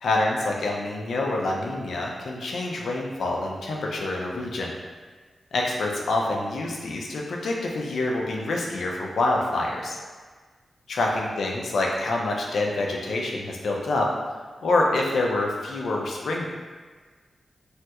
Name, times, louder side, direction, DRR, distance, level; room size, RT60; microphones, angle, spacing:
voice 1, 0.0-4.7 5.5-10.0 10.9-14.1 14.6-16.5, left 2 dB, 80° left, -1 dB, 0.4 m, -26 dB
3.1 x 2.8 x 2.3 m, 1.5 s
wide cardioid pair, 140°, 0 cm